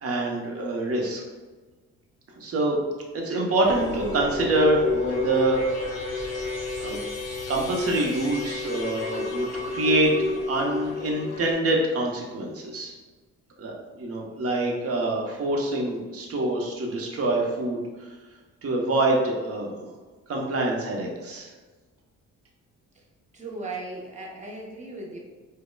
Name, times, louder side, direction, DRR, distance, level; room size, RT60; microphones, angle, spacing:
voice 1, 0.0-1.2 2.4-2.8 3.1-5.6 6.8-7.0 7.5-12.9 13.6-13.7 14.0-17.8 18.6-19.9 20.3-21.5, right 2 dB, 50° right, -1 dB, 0.9 m, -25 dB
sound 1, 3.6-11.5, left 3 dB, 55° left, 0.9 m, -30 dB
voice 2, 23.3-25.2, right 2 dB, 25° right, -2 dB, 0.9 m, -37 dB
5.0 x 2.2 x 2.2 m, 1.3 s
cardioid pair, 90°, 30 cm